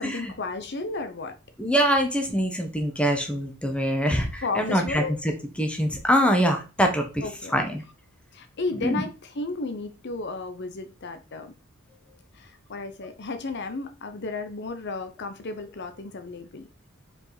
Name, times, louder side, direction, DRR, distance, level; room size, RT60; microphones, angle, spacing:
voice 1, 0.0-1.3 4.4-5.1 7.2-7.5 8.3-11.5 12.3-16.7, left 3 dB, 55° left, 9 dB, 0.7 m, -33 dB
voice 2, 1.6-5.3 5.6-7.2 7.5-7.8 8.8-9.0, equal, 5° left, 4 dB, 1.1 m, -24 dB
5.2 x 4.9 x 4.1 m, 0.32 s
head